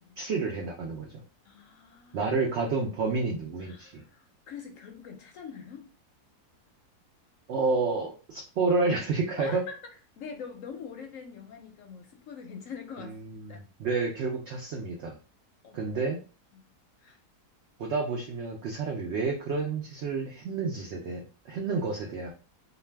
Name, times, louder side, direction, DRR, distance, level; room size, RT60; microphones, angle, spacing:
voice 1, 0.2-1.2 2.1-4.0 7.5-9.6 13.2-15.2 15.7-16.2 17.8-22.3, right 4 dB, 85° right, 0.6 m, -30 dB
voice 2, 1.4-2.3 3.6-5.9 9.4-9.8 10.2-13.2 13.5-13.6 15.6-15.9 16.5-16.7 17.0-17.2, left 6 dB, 70° left, 0.8 m, -44 dB
2.5 x 2.2 x 3.2 m
omnidirectional pair, 1.7 m